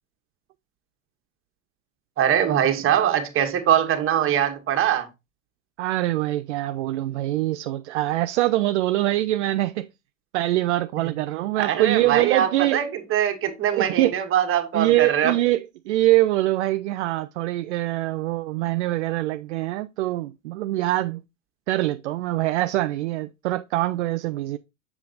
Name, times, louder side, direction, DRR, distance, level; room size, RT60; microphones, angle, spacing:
voice 1, 2.2-5.1 11.6-15.3, right 10 dB, 35° right, 1.6 m, -22 dB
voice 2, 5.8-9.9 10.3-12.8 13.7-14.1 14.7-21.2 21.7-24.6, right 16 dB, 60° right, 0.5 m, -24 dB
7.4 x 7.0 x 2.5 m
figure-of-eight pair, 80°, 39 cm